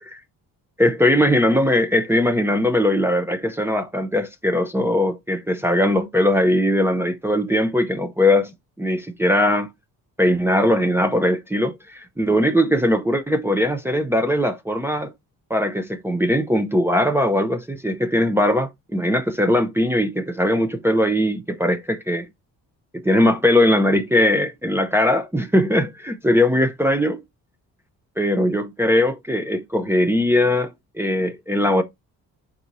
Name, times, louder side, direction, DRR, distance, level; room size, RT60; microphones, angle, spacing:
voice 1, 0.8-9.7 10.2-15.1 15.5-22.3 23.0-27.2 28.2-31.8, left 1 dB, 5° right, 0.8 m, -20 dB
4.6 x 4.0 x 5.5 m
cardioid pair, 110°, 36 cm